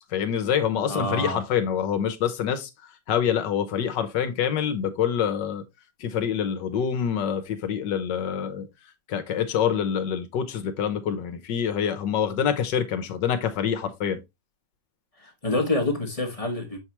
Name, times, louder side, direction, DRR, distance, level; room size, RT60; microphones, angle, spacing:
voice 1, 0.1-2.7 3.1-5.6 6.0-8.7 9.1-14.2, left 8 dB, 75° left, 1.5 m, -26 dB
voice 2, 0.9-1.4 15.2-16.8, left 2 dB, 25° left, 1.0 m, -27 dB
7.2 x 4.8 x 3.0 m
omnidirectional pair, 1.9 m